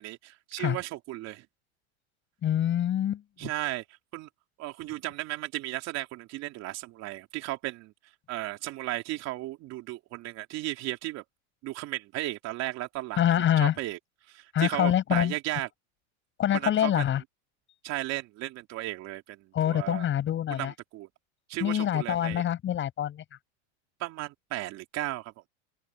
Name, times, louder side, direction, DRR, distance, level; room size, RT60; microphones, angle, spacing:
voice 1, 0.0-1.4 3.4-4.3 4.6-7.9 8.3-11.2 11.6-13.2 13.6-14.0 14.3-15.7 16.5-17.1 17.8-20.1 20.5-21.1 21.5-22.4 24.0-25.5, right 17 dB, 45° right, 3.4 m, -35 dB
voice 2, 2.4-3.2 13.2-13.7 14.5-15.3 16.4-17.2 19.5-20.7 21.6-23.2, left 11 dB, 30° left, 7.8 m, -25 dB
open air
supercardioid pair, 130°, 36 cm